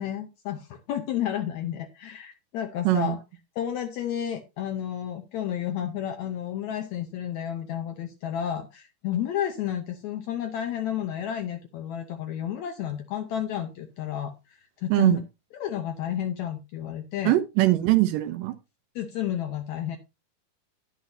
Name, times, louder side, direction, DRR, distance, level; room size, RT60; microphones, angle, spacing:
voice 1, 0.0-3.2 3.6-15.2 15.6-17.3 18.9-20.0, left 10 dB, 80° left, 5 dB, 1.7 m, -31 dB
voice 2, 2.8-3.2 14.9-15.2 17.3-18.6, right 17 dB, 75° right, 10 dB, 2.2 m, -21 dB
10.5 x 10.0 x 2.7 m, 0.26 s
omnidirectional pair, 4.3 m